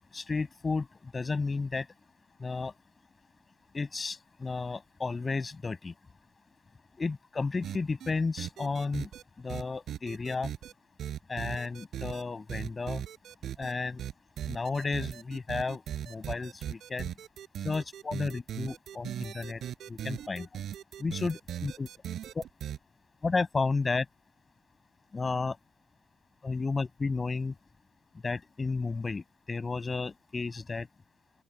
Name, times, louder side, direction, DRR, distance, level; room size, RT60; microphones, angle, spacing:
voice 1, 0.1-0.9 1.1-1.8 2.4-2.7 3.7-5.9 7.0-9.1 9.4-10.5 11.3-13.0 13.6-14.0 14.5-17.1 17.6-19.6 19.9-20.5 21.0-21.9 22.3-22.4 23.2-24.0 25.1-25.6 26.4-27.5 28.2-30.9, left 4 dB, 20° left, 6.9 m, -32 dB
sound 1, 7.6-8.1 8.4-9.2 9.5-10.7 11.0-12.2 12.5-13.7 14.0-22.8, right 10 dB, 55° right, 7.3 m, -38 dB
open air
cardioid pair, 135°, 0 cm